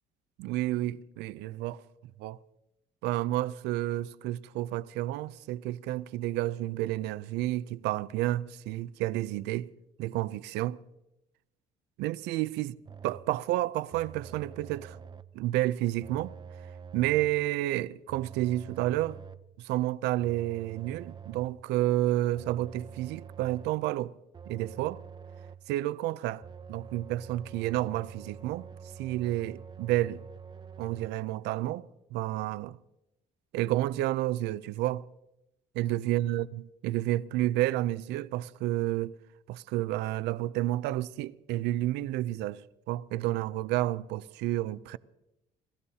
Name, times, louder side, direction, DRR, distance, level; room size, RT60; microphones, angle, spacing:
voice 1, 0.4-1.8 2.2-2.4 3.0-9.7 10.0-10.8 12.0-12.7 13.0-15.0 15.3-16.3 16.9-19.2 19.6-24.1 24.5-25.0 25.7-26.4 26.7-28.7 29.0-30.2 30.8-32.8 33.5-35.0 35.7-39.2 39.5-45.0, right 15 dB, 90° right, 0.5 m, -30 dB
sound 1, 12.9-13.4 13.9-15.4 16.0-17.5 18.1-19.6 20.2-21.6 22.3-23.9 24.3-25.7 26.4-31.1, right 7 dB, 25° right, 0.6 m, -47 dB
29.5 x 16.0 x 2.8 m
cardioid pair, 110°, 17 cm